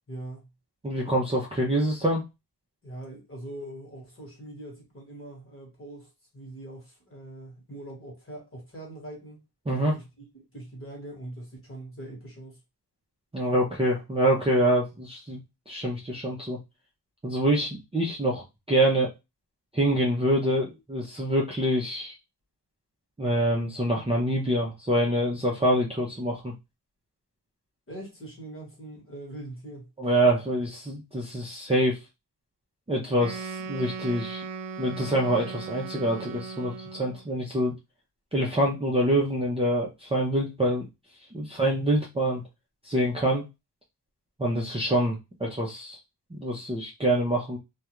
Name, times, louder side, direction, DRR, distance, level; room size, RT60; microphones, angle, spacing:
voice 1, 0.1-0.5 2.8-9.4 9.9-12.6 27.9-29.9, right 1 dB, 30° left, 1.2 m, -42 dB
voice 2, 0.8-2.2 9.7-9.9 13.3-15.4 15.7-16.6 17.2-19.1 19.7-22.1 23.2-26.5 30.0-32.0 32.9-34.4 34.8-37.7 38.3-40.9 41.3-42.4 42.8-43.4 44.4-46.0 46.3-47.6, right 1 dB, 15° right, 0.5 m, -25 dB
Wind instrument woodwind instrument, 33.2-37.3, right 5 dB, 90° right, 0.5 m, -38 dB
2.3 x 2.3 x 2.9 m
wide cardioid pair, 155°, 40 cm